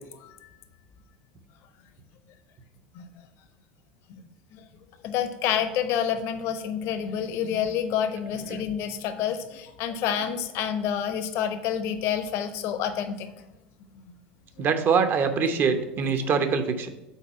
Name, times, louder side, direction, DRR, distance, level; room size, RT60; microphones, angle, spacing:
voice 1, 5.0-13.3, left 9 dB, 55° left, 10 dB, 0.7 m, -28 dB
voice 2, 14.6-16.9, right 5 dB, 40° right, 8 dB, 0.8 m, -24 dB
5.7 x 4.1 x 6.1 m, 1.0 s
hypercardioid pair, 80°, 5 cm